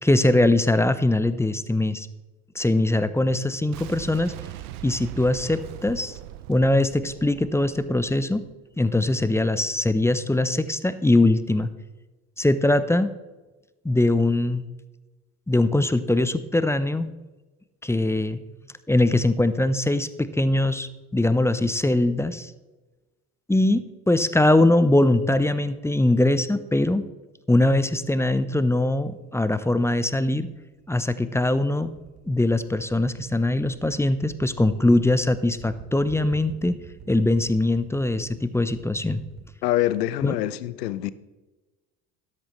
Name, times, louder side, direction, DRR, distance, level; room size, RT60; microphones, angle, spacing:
voice 1, 0.0-2.1 2.5-4.3 4.8-6.2 6.5-8.5 8.8-11.7 12.4-13.1 13.8-14.6 15.5-17.1 17.8-18.4 18.9-22.5 23.5-27.0 27.5-30.5 30.9-31.9 32.3-36.8 37.1-39.2 40.2-40.3, left 1 dB, 5° left, 13 dB, 0.6 m, -22 dB
Boom, 3.7-8.6, right 14 dB, 75° right, 0.7 m, -40 dB
sound 1, 30.1-39.5, right 8 dB, 55° right, 1.3 m, -47 dB
voice 2, 39.6-41.1, left 14 dB, 85° left, 16 dB, 0.7 m, -25 dB
13.0 x 10.5 x 3.1 m, 1.2 s
hypercardioid pair, 60°, 47 cm